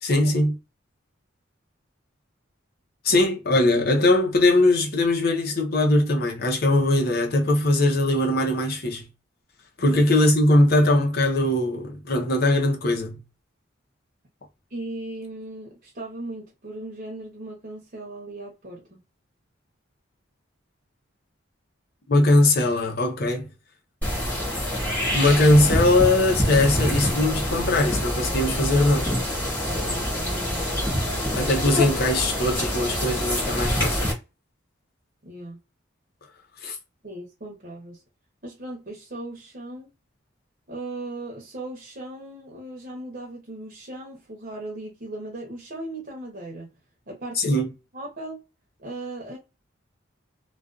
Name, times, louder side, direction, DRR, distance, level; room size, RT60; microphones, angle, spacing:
voice 1, 0.0-0.5 3.0-9.1 9.8-13.2 22.1-23.5 25.1-29.1 31.4-34.1 36.6-36.8 47.4-47.7, left 1 dB, 50° left, 0.7 m, -20 dB
voice 2, 14.7-19.0 29.6-31.2 35.2-35.6 37.0-38.0 38.4-39.9 40.7-46.7 47.1-47.6 47.9-48.4 48.8-49.4, right 2 dB, 45° right, 0.8 m, -37 dB
sound 1, 24.0-34.1, equal, 10° left, 1.2 m, -26 dB
2.4 x 2.3 x 2.4 m
head